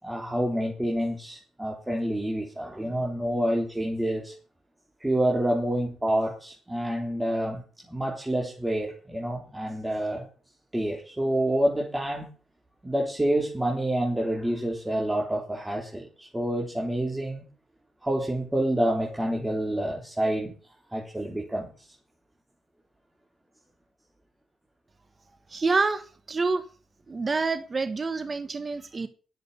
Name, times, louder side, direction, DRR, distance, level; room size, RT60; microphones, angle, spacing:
voice 1, 0.0-4.3 5.0-7.6 7.9-10.3 10.7-12.3 12.8-17.4 18.0-20.5 20.9-21.7, right 1 dB, 10° right, 3.8 m, -28 dB
voice 2, 25.5-26.6 27.1-29.1, right 4 dB, 35° right, 1.4 m, -27 dB
11.0 x 7.9 x 8.2 m
supercardioid pair, 55°, 0 cm